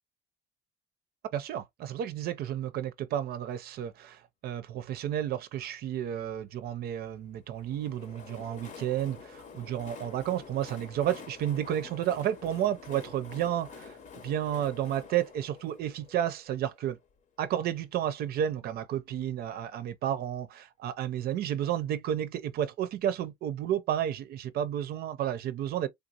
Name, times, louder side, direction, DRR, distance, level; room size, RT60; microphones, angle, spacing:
voice 1, 1.3-14.0 14.2-17.0 17.4-25.9, right 11 dB, 65° right, 0.5 m, -32 dB
Train, 7.5-17.2, left 6 dB, 50° left, 0.8 m, -48 dB
3.4 x 2.5 x 2.7 m
cardioid pair, 110°, 17 cm